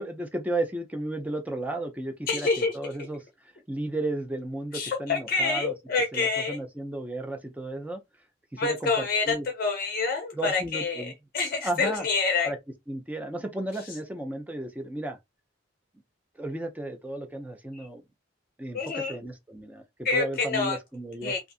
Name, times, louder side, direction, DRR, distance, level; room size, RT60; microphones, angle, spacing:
voice 1, 0.0-5.7 6.1-8.0 8.5-9.5 10.3-11.1 11.6-12.1 12.4-12.6 12.9-15.2 16.4-18.0 18.6-21.3, right 1 dB, 10° right, 0.4 m, -34 dB
voice 2, 2.3-2.9 4.7-6.6 8.6-12.5 17.7-17.9 18.7-19.2 20.0-20.8 21.2-21.5, left 4 dB, 50° left, 0.5 m, -27 dB
2.4 x 2.4 x 2.5 m
head